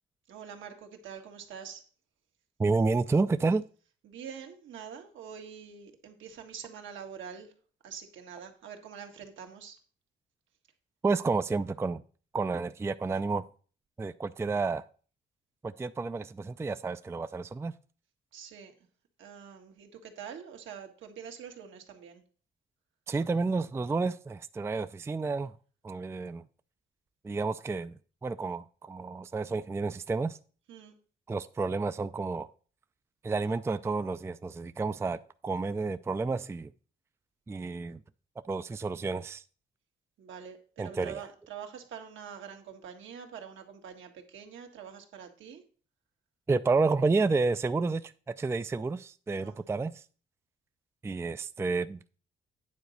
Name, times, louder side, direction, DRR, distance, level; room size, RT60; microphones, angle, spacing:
voice 1, 0.3-1.8 4.0-7.5 7.8-9.8 18.3-18.7 19.2-22.2 30.7-30.9 40.2-45.6 49.4-49.6, right 7 dB, 75° right, 1.7 m, -45 dB
voice 2, 2.6-3.6 11.0-12.0 12.3-13.4 14.0-14.8 15.6-17.7 23.1-25.5 25.8-26.4 27.2-27.9 28.2-30.4 31.3-32.5 33.2-36.7 37.5-38.0 38.5-39.4 40.8-41.2 46.5-50.0 51.0-52.2, right 3 dB, 15° right, 0.4 m, -30 dB
9.4 x 4.0 x 6.4 m
cardioid pair, 90°, 20 cm